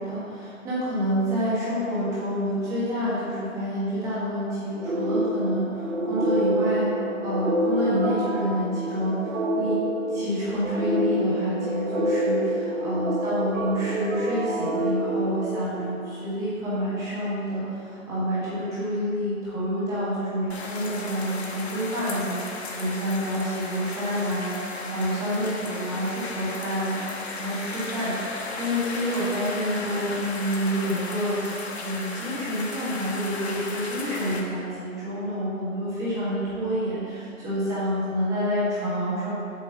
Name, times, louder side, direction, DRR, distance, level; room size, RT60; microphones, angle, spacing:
voice 1, 0.0-6.9 7.2-9.8 10.1-39.3, equal, 10° right, -9 dB, 1.5 m, -28 dB
sound 1, 4.8-16.1, right 1 dB, 55° right, 1.3 m, -27 dB
sound 2, 20.5-34.4, left 3 dB, 50° left, 1.2 m, -35 dB
8.0 x 4.9 x 6.9 m, 2.5 s
figure-of-eight pair, 145°, 41 cm